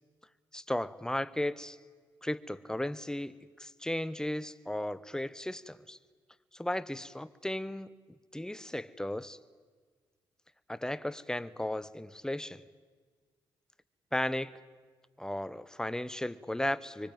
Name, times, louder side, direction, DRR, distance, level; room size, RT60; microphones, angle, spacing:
voice 1, 0.5-1.8 2.2-6.0 6.5-7.9 8.3-9.4 10.7-12.6 14.1-14.6 15.2-17.1, left 1 dB, 5° left, 17 dB, 1.0 m, -35 dB
24.5 x 24.5 x 9.1 m, 1.5 s
supercardioid pair, 60°, 10 cm